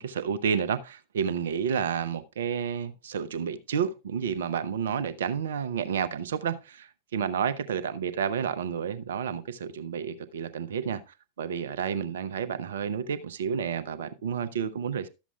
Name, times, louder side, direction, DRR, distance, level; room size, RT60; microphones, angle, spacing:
voice 1, 0.0-11.0 11.4-15.1, right 7 dB, 60° right, 0.7 m, -30 dB
12.5 x 7.2 x 2.3 m
figure-of-eight pair, 90°, 0 cm